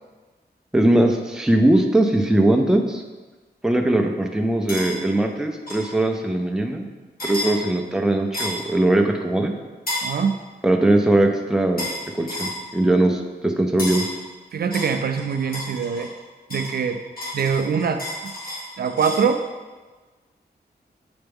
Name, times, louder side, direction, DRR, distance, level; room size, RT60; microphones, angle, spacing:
voice 1, 0.7-3.0 3.6-6.9 7.2-9.5 10.6-11.9 12.2-14.0, right 1 dB, 5° right, 3 dB, 0.6 m, -20 dB
sound 1, 4.7-4.9 5.7-5.9 7.2-7.5 8.3-8.7 9.9-10.1 11.8-12.0 12.3-12.6 13.8-14.1 14.7-16.1 16.5-19.3, left 1 dB, 60° left, 2.2 m, -31 dB
voice 2, 10.0-10.4 14.5-16.1 16.5-17.0 17.3-18.3 18.8-19.4, right 6 dB, 65° right, 7 dB, 0.4 m, -23 dB
7.9 x 4.4 x 3.5 m, 1.3 s
wide cardioid pair, 110°, 17 cm